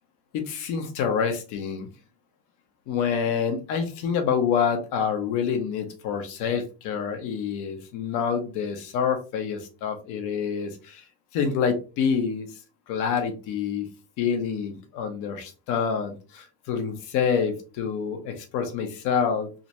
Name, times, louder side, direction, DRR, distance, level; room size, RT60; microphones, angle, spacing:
voice 1, 0.3-1.9 2.9-11.0 11.3-12.5 12.9-13.9 14.2-19.5, left 7 dB, 60° left, 5 dB, 1.2 m, -27 dB
4.0 x 2.6 x 3.0 m, 0.33 s
supercardioid pair, 130°, 35 cm